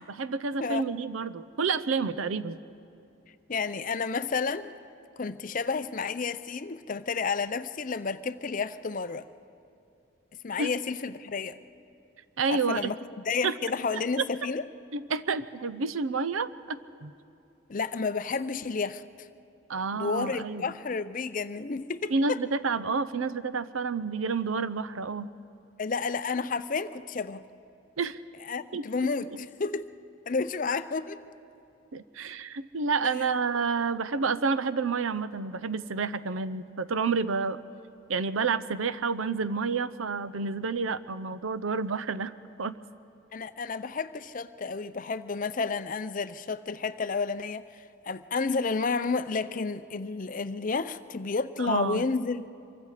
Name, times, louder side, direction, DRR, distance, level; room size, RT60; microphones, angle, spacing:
voice 1, 0.1-2.6 10.6-10.7 12.4-12.9 13.4-13.5 14.2-14.3 14.9-17.1 19.7-20.7 22.1-25.3 28.0-28.2 28.7-28.8 31.9-37.6 38.1-42.3 42.6-42.7 51.6-52.1, right 4 dB, 90° right, 14 dB, 0.7 m, -29 dB
voice 2, 0.6-0.9 3.5-4.7 5.2-9.3 10.4-11.6 12.5-13.0 13.3-14.6 17.7-19.3 19.9-22.4 25.8-27.4 28.4-29.8 30.3-31.2 43.3-47.7 48.0-52.5, left 4 dB, 40° left, 13 dB, 0.6 m, -31 dB
26.0 x 23.5 x 5.0 m, 2.7 s
head